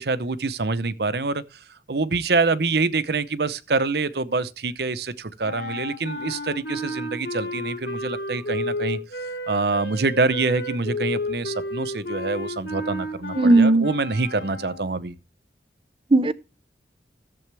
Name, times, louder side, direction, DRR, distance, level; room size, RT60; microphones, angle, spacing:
voice 1, 0.0-9.0 9.5-15.1, right 3 dB, 60° right, 0.8 m, -26 dB
sound 1, 5.4-15.0, left 1 dB, 65° left, 2.9 m, -32 dB
voice 2, 13.4-13.9 16.1-16.3, right 2 dB, 30° right, 0.5 m, -16 dB
14.0 x 7.8 x 3.4 m
head